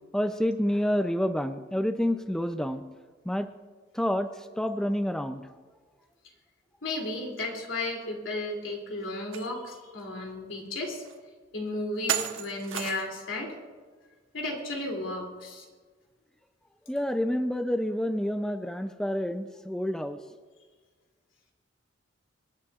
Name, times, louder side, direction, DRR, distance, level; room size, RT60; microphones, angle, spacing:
voice 1, 0.1-2.8 3.3-3.5 3.9-5.4 16.9-20.2, equal, 5° left, 8 dB, 0.4 m, -28 dB
voice 2, 6.8-11.0 11.5-13.6 14.3-15.7, left 2 dB, 85° left, 0 dB, 2.8 m, -34 dB
sound 1, 9.3-9.5 10.0-10.1 11.0-11.1 12.1-13.2, right 8 dB, 85° right, 1.1 m, -32 dB
25.0 x 10.5 x 2.4 m, 1.5 s
head